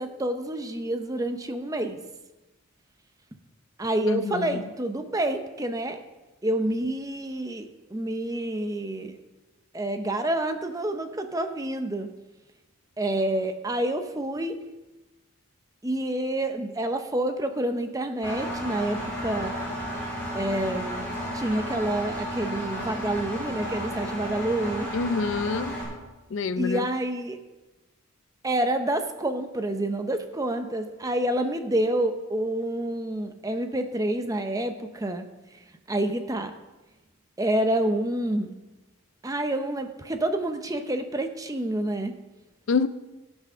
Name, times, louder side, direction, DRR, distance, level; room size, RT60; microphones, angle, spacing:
voice 1, 0.0-2.0 3.8-6.0 6.4-9.1 9.7-12.1 13.0-14.6 15.8-19.5 20.3-24.9 26.6-27.4 28.4-35.3 35.9-36.5 37.4-38.5 39.2-42.1, right 1 dB, 15° right, 0.6 m, -28 dB
voice 2, 4.1-4.6 24.9-25.8 26.3-26.8 42.7-42.9, left 4 dB, 60° left, 0.4 m, -27 dB
Engine, 18.2-25.8, equal, 10° left, 3.9 m, -33 dB
13.5 x 6.2 x 5.6 m
head